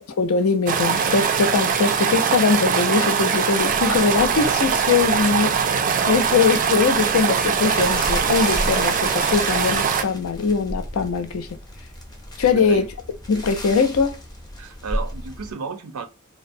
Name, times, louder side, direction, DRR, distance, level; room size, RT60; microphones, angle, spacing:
voice 1, 0.2-5.5 6.1-11.5 12.4-12.9 13.3-14.2, left 5 dB, 70° left, 0.4 m, -21 dB
sound 1, 0.7-10.0, right 6 dB, 40° right, 0.3 m, -21 dB
Rope Sound, 3.5-15.5, equal, 20° left, 0.5 m, -34 dB
voice 2, 6.1-6.5 12.5-12.9 14.6-16.1, right 5 dB, 90° right, 0.5 m, -33 dB
2.6 x 2.0 x 2.5 m
head